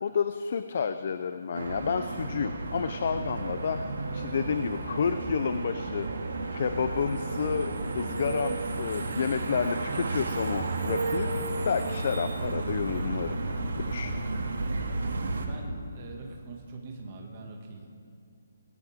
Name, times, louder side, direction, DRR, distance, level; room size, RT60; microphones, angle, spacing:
voice 1, 0.0-3.8 4.1-6.1 6.5-14.1, left 6 dB, 40° left, 10 dB, 0.5 m, -30 dB
sound 1, 1.5-15.5, right 3 dB, 85° right, 2.2 m, -32 dB
voice 2, 15.4-17.9, right 3 dB, 25° right, 1 dB, 1.9 m, -43 dB
20.5 x 17.0 x 3.6 m, 2.3 s
hypercardioid pair, 175°, 0 cm